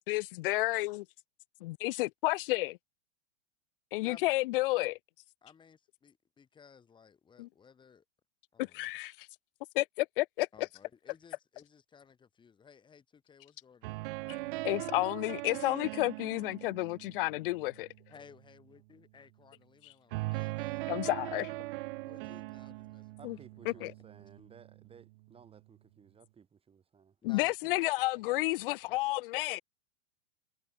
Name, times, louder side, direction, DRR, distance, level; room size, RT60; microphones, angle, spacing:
voice 1, 0.1-1.1 1.6-2.8 3.9-5.0 7.4-7.5 8.6-9.3 9.7-10.7 14.6-17.9 20.9-21.5 23.2-23.4 23.7-23.9 27.2-29.6, left 20 dB, 50° left, 0.5 m, -31 dB
voice 2, 4.0-4.3 5.4-8.0 8.5-8.9 10.5-14.8 18.1-21.1 21.4-21.6 22.0-23.9 27.2-28.5 28.9-29.2, left 6 dB, 15° left, 2.0 m, -58 dB
sound 1, 13.8-18.0 20.1-25.1, right 22 dB, 45° right, 0.8 m, -40 dB
voice 3, 23.2-27.2, right 7 dB, 15° right, 4.0 m, -57 dB
supercardioid pair, 145°, 36 cm